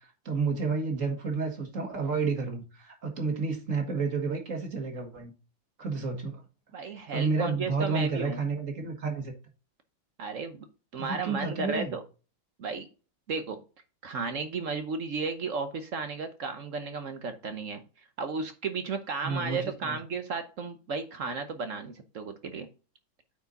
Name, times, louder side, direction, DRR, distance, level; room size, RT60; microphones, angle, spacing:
voice 1, 0.3-5.3 5.8-6.4 7.1-9.3 11.0-11.9 19.2-20.0, right 4 dB, 40° right, 2.0 m, -30 dB
voice 2, 6.7-8.4 10.2-10.6 10.9-12.0 12.6-12.9 13.3-13.6 14.0-17.8 18.2-22.7, right 4 dB, 55° right, 0.9 m, -34 dB
9.0 x 4.7 x 4.0 m
omnidirectional pair, 2.2 m